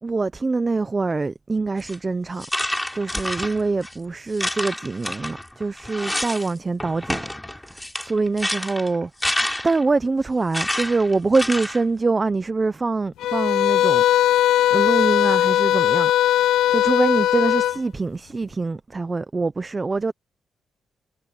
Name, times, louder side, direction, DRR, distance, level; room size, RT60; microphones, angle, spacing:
voice 1, 0.0-2.5 2.9-7.2 7.6-14.3 14.7-16.1 16.7-20.1, right 3 dB, 20° right, 0.6 m, -24 dB
sound 1, 1.8-2.0 2.4-3.9 4.3-6.5 6.8-9.9 10.5-11.8, left 1 dB, 5° left, 3.2 m, -28 dB
sound 2, 13.2-17.8, left 12 dB, 90° left, 0.5 m, -19 dB
cardioid pair, 150°, 0 cm